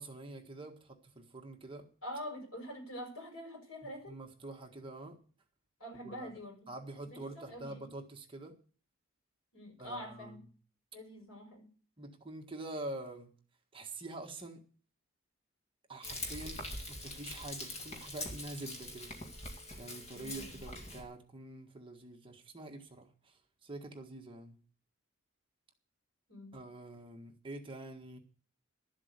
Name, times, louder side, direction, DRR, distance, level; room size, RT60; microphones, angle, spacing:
voice 1, 0.0-1.9 4.1-5.2 6.0-6.3 6.7-8.6 9.8-10.4 12.0-13.3 13.7-14.6 15.9-19.2 19.8-24.6 26.5-28.2, right 2 dB, 25° right, 3 dB, 1.6 m, -46 dB
voice 2, 2.0-4.2 5.8-6.7 7.1-7.9 9.5-10.4 10.9-11.7 20.1-20.6 26.3-26.6, equal, 70° left, 2 dB, 6.4 m, -45 dB
Frying (food), 16.0-21.0, left 1 dB, 30° left, 2.1 m, -43 dB
12.5 x 7.5 x 8.2 m, 0.41 s
head